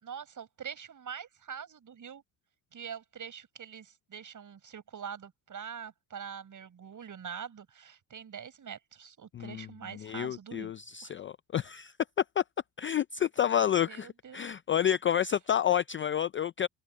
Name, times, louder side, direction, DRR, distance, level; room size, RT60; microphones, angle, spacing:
voice 1, 0.0-2.2 2.7-10.7 11.0-11.1 13.8-14.5, right 7 dB, 40° right, 7.0 m, -44 dB
voice 2, 9.3-9.7 9.9-11.9 12.4-12.5 12.8-16.7, left 10 dB, 25° left, 0.4 m, -29 dB
open air
supercardioid pair, 95°, 49 cm